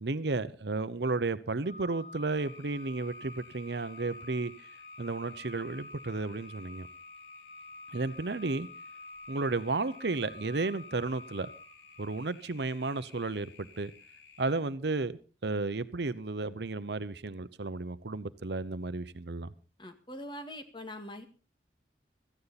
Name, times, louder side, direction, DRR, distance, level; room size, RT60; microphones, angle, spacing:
voice 1, 0.0-4.5 5.0-6.9 7.9-8.7 9.3-11.5 12.0-13.9 14.4-19.5, right 3 dB, 70° right, 15 dB, 0.8 m, -33 dB
Organ, 1.6-12.4, left 2 dB, 55° left, 5.3 m, -49 dB
sound 1, 2.3-14.6, left 6 dB, 75° left, 2.6 m, -57 dB
voice 2, 19.8-21.3, left 1 dB, 25° left, 7 dB, 1.9 m, -43 dB
16.5 x 14.5 x 4.2 m, 0.35 s
head